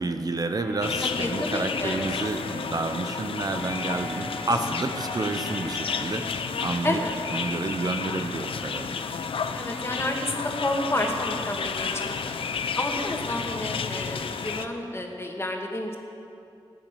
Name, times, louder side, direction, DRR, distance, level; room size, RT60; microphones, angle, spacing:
voice 1, 0.0-7.0 7.3-9.1, right 3 dB, 45° right, 7 dB, 0.8 m, -30 dB
sound 1, 0.6-6.1, left 1 dB, ahead, 2.8 m, -40 dB
sound 2, 0.8-14.6, left 5 dB, 85° left, 0.7 m, -31 dB
voice 2, 1.0-2.0 6.8-7.1 9.5-12.1 12.7-16.0, left 1 dB, 30° left, 1 dB, 2.2 m, -30 dB
15.0 x 9.1 x 9.2 m, 2.6 s
cardioid pair, 65°, 9 cm